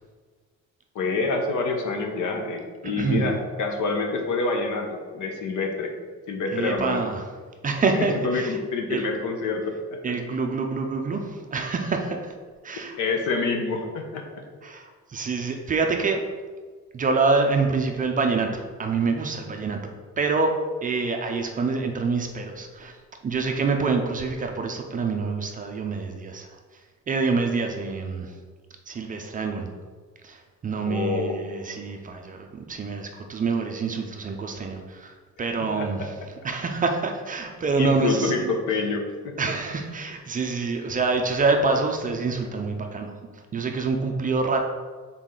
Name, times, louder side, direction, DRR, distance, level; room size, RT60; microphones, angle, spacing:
voice 1, 0.9-5.9 6.3-7.0 7.8-10.0 12.7-14.4 30.8-31.4 35.8-36.1 37.8-39.4, left 3 dB, 70° left, 3 dB, 1.0 m, -27 dB
voice 2, 2.8-3.3 6.5-7.3 7.6-8.6 8.9-9.1 10.0-12.3 12.6-12.9 14.6-16.3 16.9-19.8 20.2-20.5 20.8-22.9 23.2-26.5 27.1-28.4 28.9-29.7 30.2-36.1 36.4-38.5 39.4-43.1 43.5-44.6, right 4 dB, 25° right, 3 dB, 0.4 m, -26 dB
6.2 x 4.0 x 3.8 m, 1.5 s
cardioid pair, 180°, 31 cm